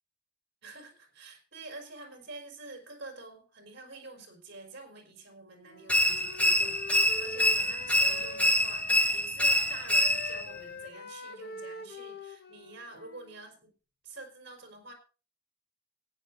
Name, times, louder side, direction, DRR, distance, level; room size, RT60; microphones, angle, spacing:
voice 1, 0.6-13.7 14.0-14.9, right 2 dB, 60° right, 4 dB, 4.5 m, -47 dB
Wind instrument woodwind instrument, 5.6-9.3 9.5-13.5, left 2 dB, 55° left, 1.4 m, -45 dB
sound 1, 5.9-10.5, left 1 dB, 5° left, 0.9 m, -26 dB
15.0 x 9.5 x 4.0 m, 0.36 s
head